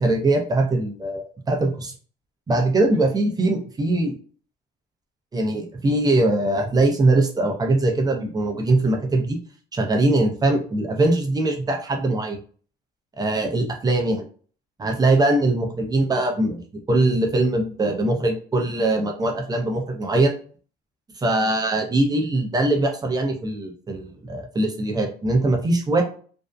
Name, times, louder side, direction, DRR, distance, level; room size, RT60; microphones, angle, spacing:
voice 1, 0.0-1.9 2.5-4.1 5.3-9.4 9.7-12.4 13.2-14.2 14.8-20.3 21.2-26.0, right 2 dB, 25° right, 3 dB, 0.6 m, -21 dB
2.6 x 2.0 x 2.3 m, 0.42 s
cardioid pair, 110°, 17 cm